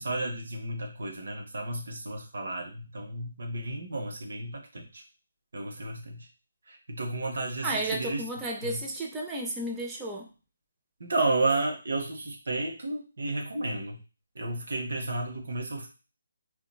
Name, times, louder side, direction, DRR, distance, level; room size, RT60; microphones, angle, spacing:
voice 1, 0.0-5.0 5.5-6.2 6.7-8.3 8.6-8.8 11.0-14.0 14.4-15.9, right 2 dB, 65° right, 2 dB, 0.7 m, -32 dB
voice 2, 7.6-10.3, right 1 dB, 10° right, -1 dB, 0.5 m, -33 dB
2.9 x 2.2 x 2.3 m, 0.32 s
figure-of-eight pair, 150°, 0 cm